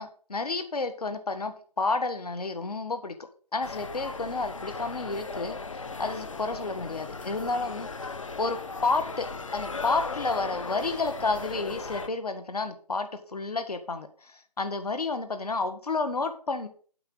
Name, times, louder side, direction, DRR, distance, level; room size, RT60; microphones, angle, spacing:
voice 1, 0.0-3.1 3.5-5.6 6.0-7.9 8.4-9.3 9.5-16.7, left 3 dB, 65° left, 9 dB, 1.6 m, -30 dB
sound 1, 3.6-12.1, left 4 dB, 50° left, 0.8 m, -37 dB
8.0 x 5.2 x 6.4 m, 0.43 s
hypercardioid pair, 180°, 21 cm